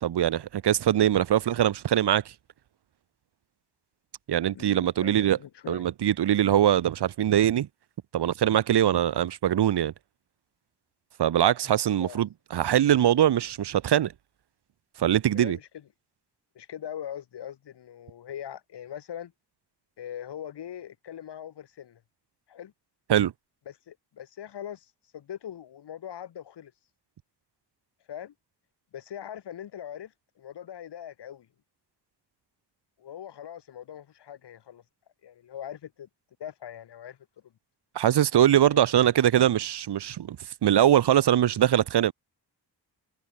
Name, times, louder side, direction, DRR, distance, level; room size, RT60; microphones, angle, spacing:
voice 1, 0.0-2.2 4.3-5.4 5.7-7.7 8.1-9.9 11.2-14.1 15.0-15.6 23.1-23.3 37.9-40.4 40.6-42.1, right 11 dB, 75° right, 1.2 m, -22 dB
voice 2, 4.5-5.9 11.9-12.2 15.3-15.9 16.5-19.3 20.0-22.0 22.5-22.7 23.7-26.7 28.1-28.3 28.9-31.5 33.0-34.8 35.2-36.1 36.4-37.2 37.4-37.5 38.7-38.8, left 10 dB, 85° left, 3.1 m, -41 dB
cardioid pair, 65°, 41 cm